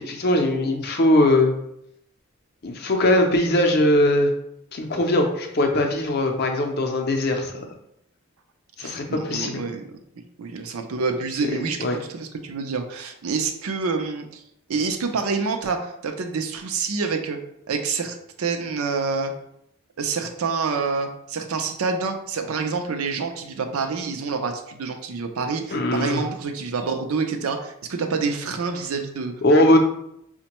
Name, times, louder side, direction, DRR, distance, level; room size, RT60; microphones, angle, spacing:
voice 1, 0.0-1.5 2.6-4.3 4.7-7.6 8.8-9.6 11.8-12.0 25.7-26.2 29.4-29.8, left 1 dB, 45° left, 3 dB, 0.5 m, -20 dB
voice 2, 8.8-9.8 10.4-14.4 14.7-17.4 17.7-19.3 20.0-29.3, right 4 dB, 80° right, 6 dB, 0.5 m, -27 dB
5.0 x 2.2 x 2.9 m, 0.76 s
head